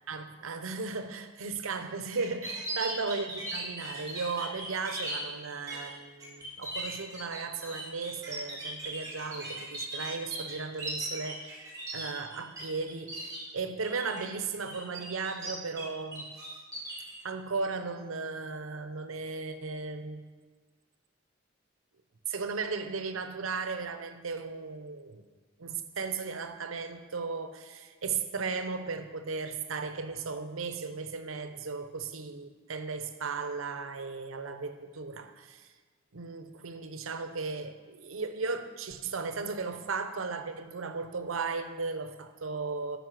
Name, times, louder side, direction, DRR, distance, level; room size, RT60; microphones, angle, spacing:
voice 1, 0.1-16.5 17.2-20.3 22.3-25.2 25.6-35.7 36.1-43.0, right 4 dB, 90° right, 0.8 m, -36 dB
sound 1, 2.2-5.2 5.7-5.9 6.2-12.6 12.9-13.4 13.8-14.2 14.6-15.8 16.1-17.1, right 2 dB, 15° right, 3.2 m, -38 dB
13.0 x 5.5 x 5.8 m
head